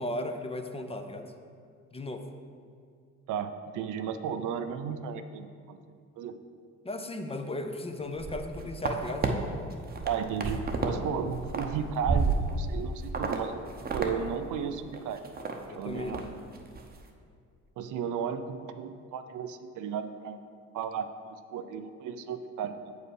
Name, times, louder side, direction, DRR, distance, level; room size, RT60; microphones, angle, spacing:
voice 1, 0.0-1.3 1.9-2.3 6.8-9.3 15.7-16.4, left 1 dB, 20° left, 6 dB, 0.6 m, -36 dB
voice 2, 3.3-5.8 6.2-6.4 10.1-13.6 13.9-15.2 15.7-16.3 17.8-20.4 20.7-23.0, right 7 dB, 80° right, 9 dB, 0.5 m, -34 dB
sound 1, 8.1-9.3 9.7-11.0 11.2-12.8 13.1-13.4 13.7-14.1 14.4-14.5 14.9-15.5 15.9-16.2 16.6-16.8, right 4 dB, 30° right, 0.7 m, -31 dB
7.3 x 5.4 x 4.7 m, 2.2 s
cardioid pair, 90°, 30 cm